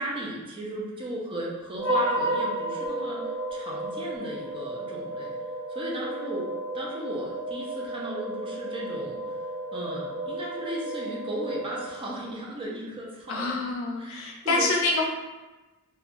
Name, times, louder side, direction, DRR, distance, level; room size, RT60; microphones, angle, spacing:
voice 1, 0.0-3.2 3.5-5.3 5.7-9.4 9.7-13.6 14.0-14.7, right 1 dB, 25° right, -4 dB, 0.4 m, -36 dB
sound 1, 1.8-12.3, right 1 dB, 50° right, 1.0 m, -32 dB
voice 2, 13.3-15.0, left 3 dB, 65° left, 0 dB, 0.5 m, -26 dB
3.0 x 2.2 x 2.4 m, 1.1 s
head